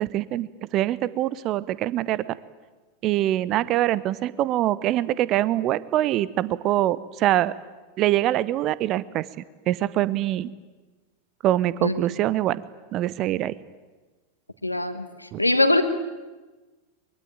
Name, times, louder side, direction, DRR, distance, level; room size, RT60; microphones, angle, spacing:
voice 1, 0.0-2.4 3.0-7.5 8.0-9.3 9.7-10.5 11.4-12.6 12.9-13.5 15.3-15.4, right 14 dB, 35° right, 19 dB, 0.9 m, -24 dB
voice 2, 14.6-15.8, left 2 dB, 85° left, 10 dB, 1.5 m, -22 dB
23.0 x 23.0 x 8.9 m, 1.2 s
figure-of-eight pair, 90°, 0 cm